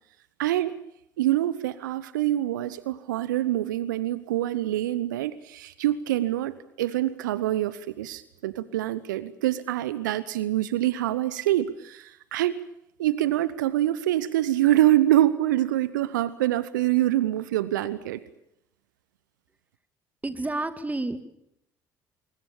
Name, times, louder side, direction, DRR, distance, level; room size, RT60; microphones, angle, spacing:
voice 1, 0.4-0.7 1.2-12.6 13.0-18.2, right 14 dB, 75° right, 16 dB, 0.9 m, -25 dB
voice 2, 20.2-21.3, right 2 dB, 15° right, 10 dB, 2.4 m, -30 dB
24.0 x 24.0 x 7.2 m, 0.77 s
figure-of-eight pair, 55°, 10 cm